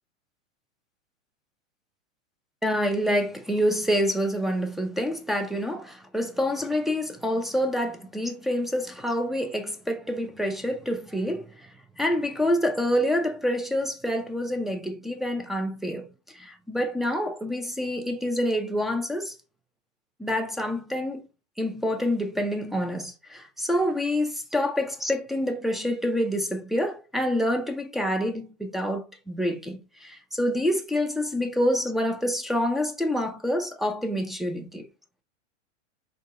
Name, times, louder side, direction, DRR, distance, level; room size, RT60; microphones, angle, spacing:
voice 1, 2.6-19.3 20.2-21.2 21.6-34.9, equal, ahead, 0.7 m, -27 dB
5.3 x 3.9 x 4.7 m
hypercardioid pair, 105°, 38 cm